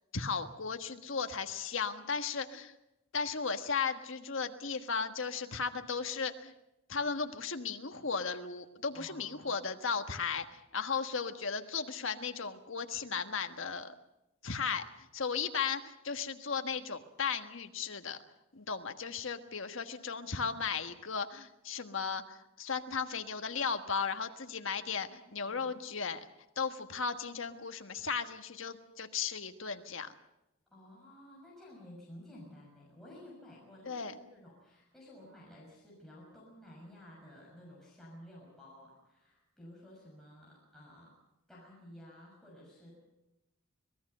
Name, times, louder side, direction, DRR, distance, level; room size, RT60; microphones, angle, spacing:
voice 1, 0.1-2.7 3.1-6.5 6.9-13.9 14.4-18.2 18.5-26.2 26.6-30.1 33.8-34.1, left 5 dB, 60° left, 7 dB, 1.4 m, -36 dB
voice 2, 8.9-9.5 25.0-25.7 30.7-41.1 41.5-43.0, left 1 dB, ahead, -5 dB, 6.2 m, -53 dB
25.5 x 18.5 x 6.7 m, 0.94 s
head